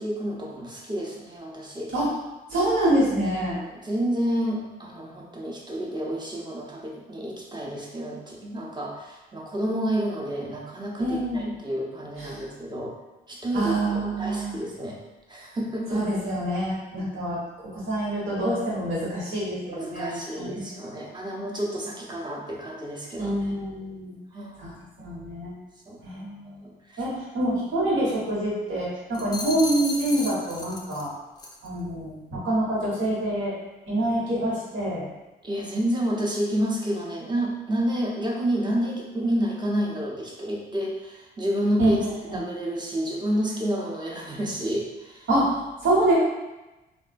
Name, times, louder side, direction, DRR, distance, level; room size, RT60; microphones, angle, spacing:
voice 1, 0.0-1.9 3.5-12.9 13.3-15.0 15.3-16.0 19.7-23.5 24.3-24.8 25.9-26.0 26.4-27.0 35.4-42.1 42.3-45.3, equal, 20° right, -2 dB, 0.7 m, -29 dB
voice 2, 2.5-3.6 11.0-11.5 12.2-12.4 13.5-14.6 15.9-17.4 17.7-20.6 23.2-24.1 24.6-24.7 25.0-25.5 26.0-26.6 27.0-31.1 31.6-33.5 33.9-35.1 41.8-42.4 45.3-46.1, right 1 dB, 70° right, -7 dB, 1.2 m, -26 dB
sound 1, 29.1-31.1 31.4-31.7, left 2 dB, 20° left, 0.5 m, -34 dB
3.4 x 2.2 x 2.5 m, 1.1 s
cardioid pair, 90°, 20 cm